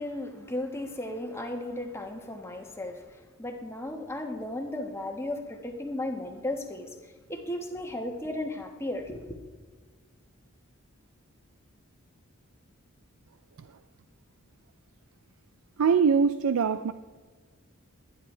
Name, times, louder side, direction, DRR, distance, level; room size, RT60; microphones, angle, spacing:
voice 1, 0.0-9.4, left 1 dB, 10° left, 1.4 m, -35 dB
voice 2, 15.8-16.9, right 6 dB, 70° right, 0.4 m, -23 dB
22.0 x 10.5 x 3.3 m
head